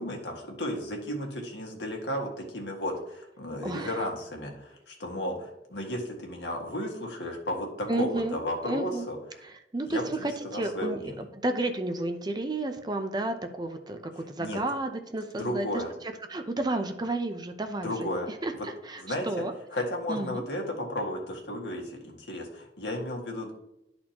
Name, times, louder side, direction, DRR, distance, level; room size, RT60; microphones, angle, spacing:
voice 1, 0.0-9.4 9.9-11.2 14.4-14.6 15.4-15.9 17.8-18.7 19.0-19.4 19.7-23.5, left 1 dB, 80° left, 0 dB, 1.7 m, -34 dB
voice 2, 3.6-4.0 7.9-8.4 8.6-9.1 9.4-15.7 16.3-18.2 18.4-19.5 20.1-20.4, right 2 dB, 25° right, 6 dB, 0.6 m, -32 dB
11.5 x 4.3 x 2.9 m, 0.84 s
head